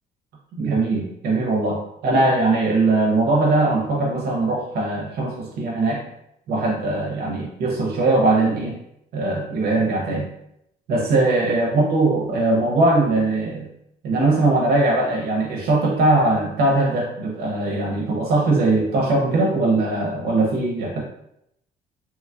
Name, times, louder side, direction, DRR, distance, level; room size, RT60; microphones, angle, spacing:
voice 1, 0.5-6.0 6.5-8.8 9.1-10.3 10.9-13.7 14.0-21.0, right 2 dB, 65° right, -1 dB, 0.6 m, -20 dB
2.9 x 2.3 x 2.3 m, 0.77 s
cardioid pair, 110°, 17 cm